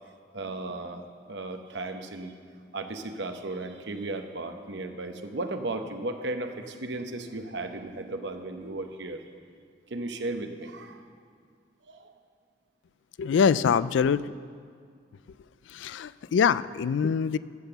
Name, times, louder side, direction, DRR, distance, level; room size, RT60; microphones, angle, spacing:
voice 1, 0.3-2.3 2.7-9.2 9.9-11.1 11.9-12.1, right 2 dB, 70° right, 6 dB, 0.8 m, -35 dB
voice 2, 13.2-14.2 15.8-17.4, left 6 dB, 80° left, 17 dB, 0.3 m, -24 dB
12.0 x 8.0 x 6.8 m, 2.1 s
head